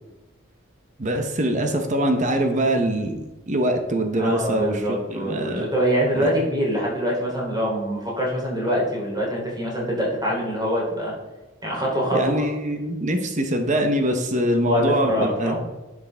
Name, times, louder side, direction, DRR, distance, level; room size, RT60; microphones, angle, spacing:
voice 1, 1.0-5.7 6.1-6.3 12.1-15.6, right 1 dB, 35° right, 6 dB, 0.8 m, -23 dB
voice 2, 4.2-11.1 11.6-12.5 14.6-15.6, equal, 20° right, -4 dB, 3.1 m, -24 dB
10.5 x 6.1 x 3.4 m, 1.1 s
head